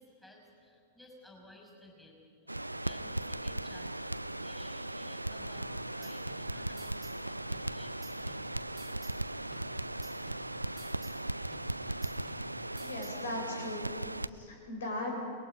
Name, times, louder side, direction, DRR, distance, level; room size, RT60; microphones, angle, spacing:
voice 1, 0.0-4.1 4.4-8.6, left 1 dB, 5° left, 0 dB, 6.0 m, -57 dB
Crackle, 2.5-14.3, right 1 dB, 90° right, 0.4 m, -38 dB
sound 1, 5.6-7.2 7.5-9.2 9.5-11.2 11.5-13.2, right 1 dB, 20° right, 2.6 m, -55 dB
voice 2, 12.7-15.2, left 1 dB, 65° left, 1 dB, 5.0 m, -38 dB
29.0 x 20.5 x 5.1 m, 2.4 s
figure-of-eight pair, 95°, 0 cm